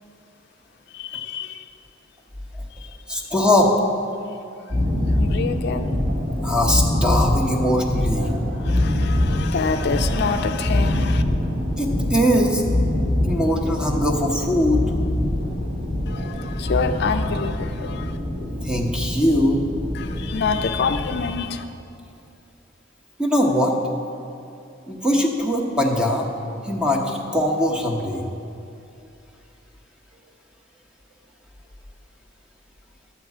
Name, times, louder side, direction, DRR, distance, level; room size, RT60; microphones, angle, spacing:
voice 1, 0.9-1.7 2.7-3.4 3.8-3.9 4.2-5.9 8.2-11.2 16.1-18.2 19.9-21.6, left 5 dB, 60° left, 7 dB, 0.4 m, -28 dB
voice 2, 3.1-3.7 6.4-8.3 11.8-12.6 13.2-14.8 18.6-19.6 23.2-23.7 24.9-26.3 26.6-28.2, equal, 5° right, 0 dB, 1.0 m, -21 dB
sound 1, 4.7-21.3, left 1 dB, 55° right, 2.5 m, -24 dB
11.5 x 4.6 x 8.3 m, 2.6 s
head